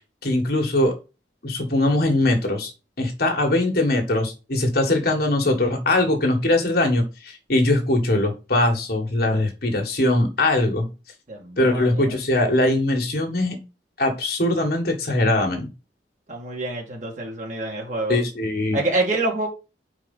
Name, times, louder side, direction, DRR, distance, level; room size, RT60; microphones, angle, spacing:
voice 1, 0.2-0.9 1.4-2.7 3.0-10.9 11.6-13.6 14.0-15.7 18.1-18.8, left 1 dB, 60° left, 3 dB, 1.8 m, -21 dB
voice 2, 11.3-12.2 16.3-18.2 18.7-19.5, right 2 dB, 45° right, 0 dB, 2.4 m, -27 dB
4.9 x 4.7 x 5.5 m, 0.30 s
head